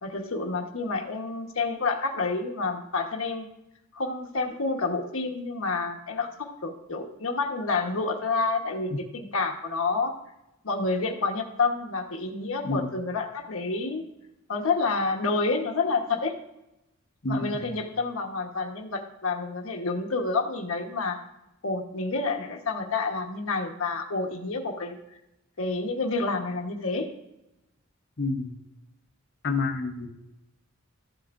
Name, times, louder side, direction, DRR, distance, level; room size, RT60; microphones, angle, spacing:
voice 1, 0.0-3.5 3.9-10.2 10.6-14.0 14.5-16.3 17.3-21.2 21.6-25.0 25.6-27.1, left 3 dB, 80° left, 2 dB, 1.1 m, -29 dB
voice 2, 17.2-17.7 28.2-28.5 29.4-30.1, left 3 dB, 50° left, 6 dB, 0.8 m, -29 dB
13.5 x 8.1 x 2.5 m, 0.89 s
head